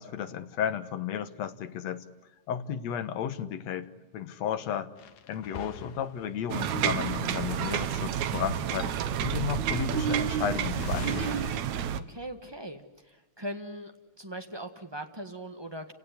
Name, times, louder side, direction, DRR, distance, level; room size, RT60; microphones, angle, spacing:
voice 1, 0.0-2.0 2.5-4.9 5.3-11.4, left 9 dB, 65° left, 11 dB, 2.3 m, -33 dB
sound 1, 5.0-6.7 7.0-7.1 7.3-8.3 9.4-9.5 10.8-11.6, left 8 dB, 85° left, 2.8 m, -42 dB
sound 2, 6.5-12.0, right 9 dB, 75° right, 2.3 m, -29 dB
voice 2, 11.9-13.9 14.2-15.9, right 1 dB, 15° right, 5 dB, 0.9 m, -40 dB
29.5 x 18.0 x 9.8 m, 1.2 s
omnidirectional pair, 3.4 m